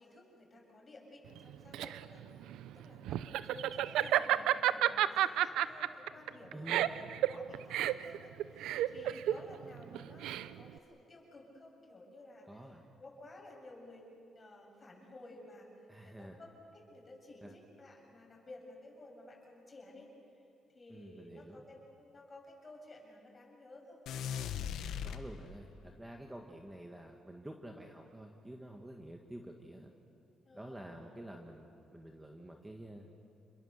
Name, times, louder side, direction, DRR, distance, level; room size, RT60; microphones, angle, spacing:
voice 1, 0.0-6.9 7.3-14.1 14.3-15.7 16.0-20.1 20.7-24.0 30.4-31.2, left 2 dB, 30° left, 0 dB, 7.4 m, -54 dB
Laughter, 1.4-10.8, right 12 dB, 90° right, 0.6 m, -31 dB
voice 2, 6.5-7.0 12.4-12.8 15.9-16.4 17.4-17.5 20.9-21.6 25.0-29.9 30.5-33.1, right 1 dB, 10° right, 2 dB, 1.9 m, -49 dB
sound 1, 24.1-25.8, left 8 dB, 80° left, 1.0 m, -39 dB
29.0 x 22.0 x 6.8 m, 2.6 s
cardioid pair, 90°, 0 cm